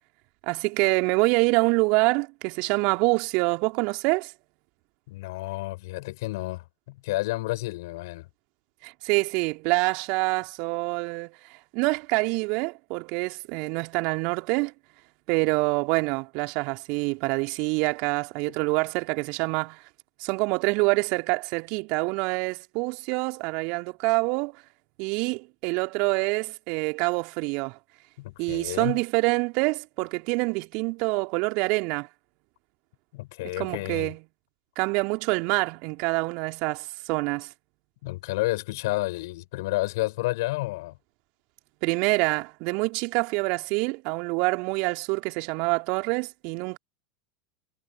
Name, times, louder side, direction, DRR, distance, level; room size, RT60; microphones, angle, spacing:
voice 1, 0.5-4.3 8.8-11.4 11.7-14.7 15.3-19.8 20.2-24.6 25.0-27.8 28.4-32.1 33.6-34.2 34.8-37.5 41.8-46.8, right 29 dB, 50° right, 3.0 m, -26 dB
voice 2, 5.1-8.3 28.2-29.0 33.1-34.1 38.0-41.0, left 20 dB, 60° left, 5.3 m, -30 dB
figure-of-eight pair, 85°, 2 cm